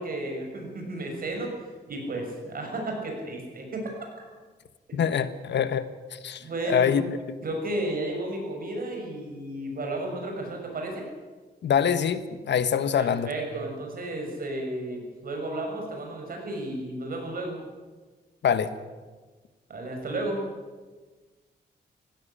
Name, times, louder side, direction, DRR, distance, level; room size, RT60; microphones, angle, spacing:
voice 1, 0.0-1.5 1.9-3.8 6.4-6.9 7.4-11.0 13.0-17.6 19.7-20.4, right 1 dB, 55° right, 1 dB, 6.7 m, -33 dB
voice 2, 4.9-5.9 6.1-7.4 11.6-13.3 18.4-18.7, left 8 dB, 90° left, 12 dB, 1.3 m, -25 dB
18.0 x 16.0 x 9.9 m, 1.3 s
wide cardioid pair, 145°, 18 cm